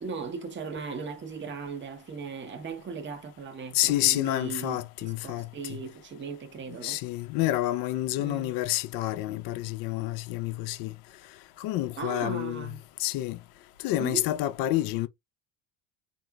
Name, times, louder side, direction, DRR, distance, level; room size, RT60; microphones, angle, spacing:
voice 1, 0.0-7.0 8.2-8.5 12.0-12.8 14.0-14.3, right 5 dB, 25° right, 0.9 m, -37 dB
voice 2, 3.7-5.8 6.8-10.9 11.6-12.7 13.0-13.4 13.8-15.1, left 15 dB, 50° left, 0.5 m, -29 dB
3.6 x 2.7 x 2.2 m
hypercardioid pair, 70°, 47 cm